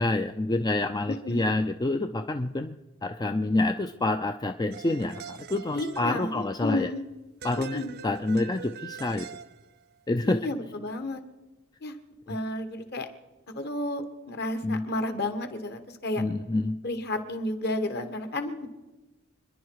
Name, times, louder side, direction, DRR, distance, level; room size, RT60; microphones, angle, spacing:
voice 1, 0.0-2.8 3.0-6.9 7.4-9.3 10.1-10.4 12.3-12.4 14.6-14.8 16.2-16.8, left 2 dB, 20° left, 8 dB, 0.4 m, -27 dB
voice 2, 1.1-1.4 5.7-7.0 7.6-7.9 10.2-11.2 11.8-11.9 12.3-13.1 13.5-16.2 16.8-18.7, left 1 dB, 50° left, 8 dB, 1.5 m, -32 dB
sound 1, 4.7-6.7 7.4-9.9, right 7 dB, 50° right, 0.6 m, -44 dB
27.5 x 11.0 x 4.7 m, 1.1 s
head